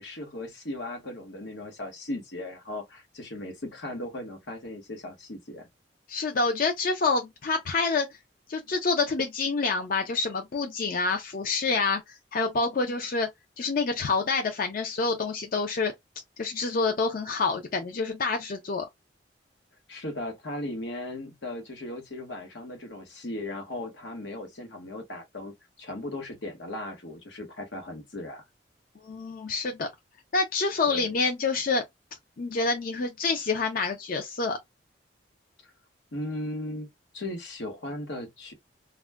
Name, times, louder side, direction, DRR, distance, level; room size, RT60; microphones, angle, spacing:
voice 1, 0.0-5.7 19.9-28.4 30.9-31.1 35.6-35.7 36.1-36.9 37.1-38.5, left 1 dB, 85° left, 1.0 m, -37 dB
voice 2, 6.1-8.1 8.5-13.3 13.6-15.9 16.4-18.9 29.0-29.9 30.3-31.8 32.4-34.6, left 4 dB, 50° left, 0.5 m, -27 dB
2.3 x 2.2 x 3.3 m
head